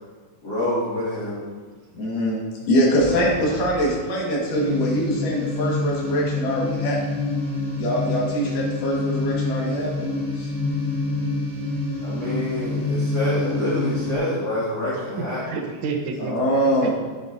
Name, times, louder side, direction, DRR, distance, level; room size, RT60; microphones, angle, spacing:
voice 1, 0.4-1.4 12.0-15.4, left 1 dB, 35° left, -10 dB, 2.6 m, -26 dB
voice 2, 2.0-2.4 2.7-7.0 7.8-10.1 10.4-10.5 16.2-16.9, equal, 85° left, -4 dB, 3.5 m, -23 dB
voice 3, 3.0-4.0 14.9-16.9, right 4 dB, 85° right, 2 dB, 1.1 m, -32 dB
sound 1, 4.5-14.2, left 2 dB, 15° left, 1.5 m, -26 dB
10.5 x 8.1 x 2.8 m, 1.5 s
omnidirectional pair, 3.6 m